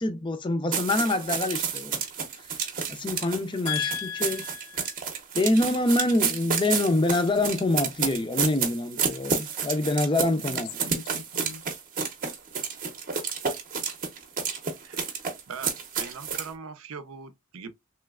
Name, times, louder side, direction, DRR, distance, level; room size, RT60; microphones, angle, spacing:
voice 1, 0.0-2.0 2.9-3.9 4.2-4.4 5.3-10.9, left 2 dB, 25° left, 0.5 m, -25 dB
sound 1, 0.7-16.5, right 6 dB, 40° right, 0.7 m, -30 dB
voice 2, 3.7-5.0 10.5-11.6, left 9 dB, 80° left, 0.4 m, -35 dB
voice 3, 14.8-15.2 15.5-17.7, right 5 dB, 85° right, 0.6 m, -41 dB
3.1 x 3.0 x 2.3 m
head